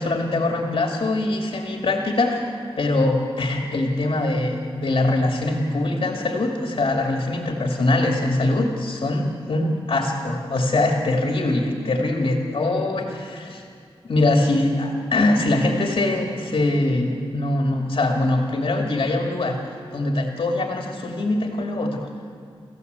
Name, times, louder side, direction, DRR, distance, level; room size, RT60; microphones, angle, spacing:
voice 1, 0.0-13.6 14.0-19.6 19.9-22.1, left 2 dB, 60° left, 1 dB, 2.5 m, -23 dB
27.0 x 15.0 x 8.2 m, 2.3 s
wide cardioid pair, 95°, 10 cm